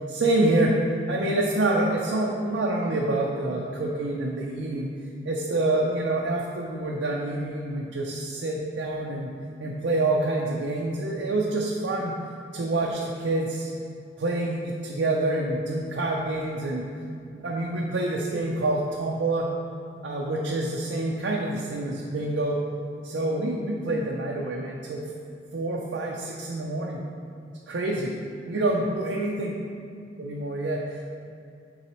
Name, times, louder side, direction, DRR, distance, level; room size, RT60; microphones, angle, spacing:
voice 1, 0.1-0.8 1.1-4.9 5.2-9.3 9.6-12.1 12.5-13.7 14.2-16.9 17.4-19.5 20.0-22.6 23.0-25.1 25.5-27.0 27.7-28.1 28.5-29.5 30.2-31.0, right 2 dB, 85° right, -2 dB, 0.6 m, -27 dB
8.8 x 3.9 x 3.0 m, 2.4 s
head